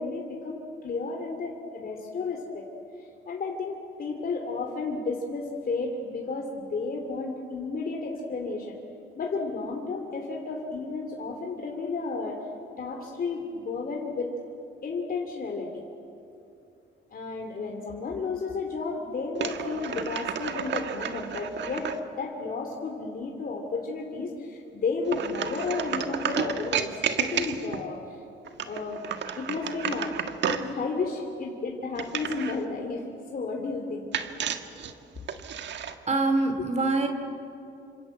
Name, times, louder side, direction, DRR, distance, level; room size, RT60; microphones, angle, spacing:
voice 1, 0.0-2.7 3.3-8.8 9.2-12.4 12.8-14.3 14.8-15.7 17.1-28.2 28.6-29.0 29.3-30.1 30.4-33.0 33.3-34.1, left 4 dB, 45° left, 1 dB, 3.3 m, -32 dB
sound 1, 19.3-22.0 25.1-27.9 28.4-30.7 32.0-32.6 34.1-35.9, right 7 dB, 65° right, 1.7 m, -32 dB
voice 2, 36.1-37.1, right 3 dB, 35° right, 7 dB, 2.8 m, -24 dB
28.5 x 26.0 x 8.0 m, 2.7 s
cardioid pair, 90°, 20 cm